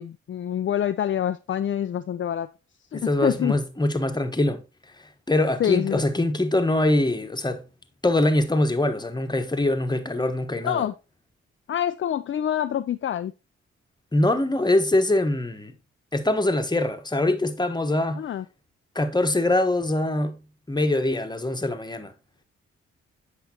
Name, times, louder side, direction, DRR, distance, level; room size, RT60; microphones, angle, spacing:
voice 1, 0.0-2.5 2.9-3.6 5.6-6.0 10.6-10.9 11.7-13.3 18.2-18.4, left 10 dB, 40° left, 0.5 m, -26 dB
voice 2, 2.9-4.6 5.3-7.6 8.0-10.9 14.1-15.7 16.1-18.2 18.9-20.4 20.7-22.1, left 1 dB, 15° left, 1.1 m, -23 dB
8.1 x 5.8 x 2.8 m
hypercardioid pair, 40°, 32 cm